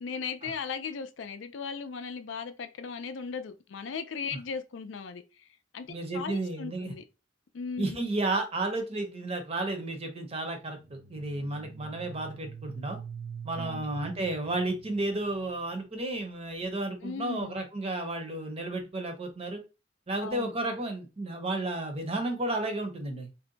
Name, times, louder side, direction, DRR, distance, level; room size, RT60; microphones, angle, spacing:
voice 1, 0.0-5.2 5.7-5.9 6.1-7.0 7.5-8.0 13.6-13.9 17.0-17.6 20.2-20.5, left 5 dB, 75° left, 0.4 m, -37 dB
voice 2, 5.9-6.9 7.8-13.0 13.4-19.6 20.1-23.3, right 2 dB, 30° right, 0.7 m, -32 dB
sound 1, 10.8-15.6, right 6 dB, 75° right, 0.6 m, -44 dB
2.6 x 2.2 x 3.8 m
head